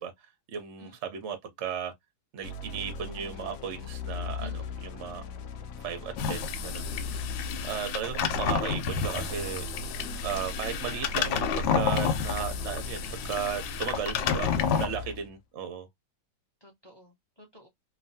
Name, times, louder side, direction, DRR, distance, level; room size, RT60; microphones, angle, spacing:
voice 1, 0.5-1.9 2.3-5.2 5.8-6.9 7.6-9.7 10.2-14.5 14.8-15.9, right 7 dB, 60° right, 0.7 m, -35 dB
sound 1, 2.4-8.0 8.9-15.3, left 5 dB, 75° left, 0.8 m, -39 dB
voice 2, 4.4-4.8 14.2-14.7 16.6-17.7, left 1 dB, 25° left, 0.5 m, -51 dB
sound 2, 6.2-14.9, left 6 dB, 90° left, 1.3 m, -30 dB
3.1 x 2.3 x 2.7 m
omnidirectional pair, 2.0 m